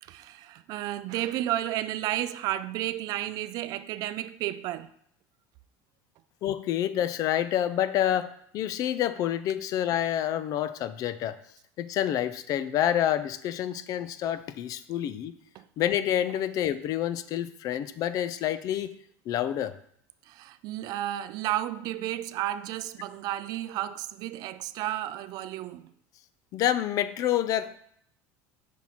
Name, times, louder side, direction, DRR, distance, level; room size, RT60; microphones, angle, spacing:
voice 1, 0.0-4.9 15.5-15.6 20.2-25.9, right 13 dB, 55° right, 0.3 m, -32 dB
voice 2, 6.4-11.4 11.8-15.3 15.8-18.9 19.3-19.7 26.5-27.8, left 11 dB, 50° left, 0.4 m, -28 dB
6.0 x 4.0 x 4.5 m
supercardioid pair, 120°, 8 cm